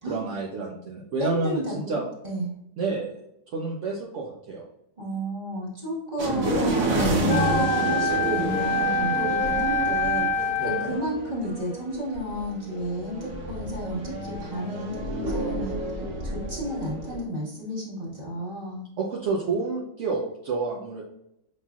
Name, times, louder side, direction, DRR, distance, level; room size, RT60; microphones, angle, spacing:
voice 1, 0.1-2.0 2.8-3.1 3.5-4.6 10.6-11.0 19.0-21.0, right 3 dB, 65° right, -3 dB, 1.0 m, -29 dB
voice 2, 1.2-2.0 2.2-2.5 5.0-15.7 16.2-18.8, equal, 30° right, -5 dB, 1.5 m, -32 dB
sound 1, 6.2-17.2, right 1 dB, 85° right, 1.4 m, -29 dB
Wind instrument woodwind instrument, 7.3-11.1, left 2 dB, 60° left, 0.7 m, -25 dB
5.7 x 3.1 x 2.3 m, 0.79 s
omnidirectional pair, 1.4 m